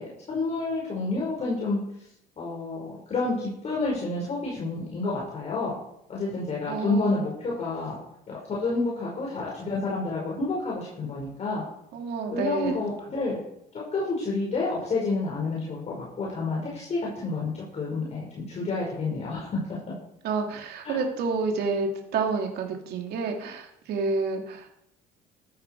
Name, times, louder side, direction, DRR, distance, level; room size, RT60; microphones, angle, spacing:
voice 1, 0.0-1.8 2.4-5.7 6.1-8.0 8.3-11.6 12.3-13.4 13.9-19.8 20.8-21.0, left 3 dB, 40° left, -4 dB, 5.2 m, -29 dB
voice 2, 6.7-7.2 11.9-12.8 20.2-24.7, right 4 dB, 70° right, 2 dB, 2.6 m, -29 dB
14.0 x 12.5 x 4.7 m, 0.77 s
cardioid pair, 110°, 17 cm